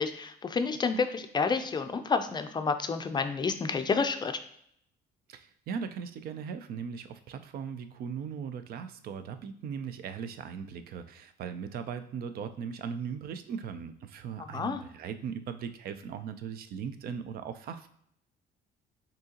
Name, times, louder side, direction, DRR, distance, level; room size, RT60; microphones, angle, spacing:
voice 1, 0.0-4.4 14.4-14.8, left 5 dB, 25° left, 8 dB, 0.4 m, -29 dB
voice 2, 5.3-17.9, right 7 dB, 65° right, 10 dB, 0.5 m, -38 dB
6.1 x 2.8 x 2.8 m, 0.69 s
cardioid pair, 110°, 17 cm